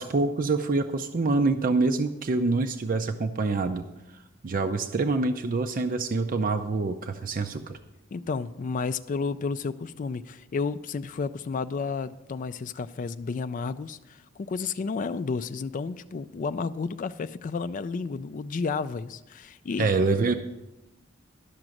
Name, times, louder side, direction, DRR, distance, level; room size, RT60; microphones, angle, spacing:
voice 1, 0.0-3.8 4.1-7.8 19.8-20.3, right 3 dB, 45° right, 7 dB, 0.5 m, -26 dB
voice 2, 8.1-19.9, left 4 dB, 40° left, 12 dB, 0.3 m, -32 dB
12.0 x 6.0 x 7.6 m, 0.98 s
head